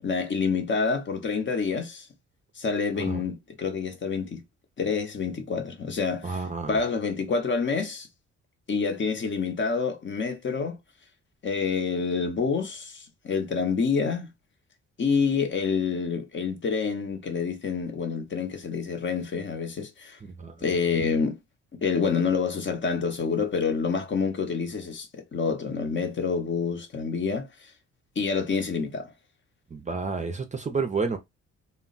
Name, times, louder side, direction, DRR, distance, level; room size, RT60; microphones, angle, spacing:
voice 1, 0.0-2.1 2.6-4.4 4.8-8.1 8.7-10.8 11.4-14.3 15.0-20.2 20.6-21.4 21.7-27.5 28.2-29.1, left 5 dB, 40° left, 0.7 m, -27 dB
voice 2, 6.2-6.8 20.4-20.5 29.7-31.2, right 4 dB, 25° right, 0.5 m, -30 dB
2.2 x 2.1 x 3.8 m
cardioid pair, 90°, 30 cm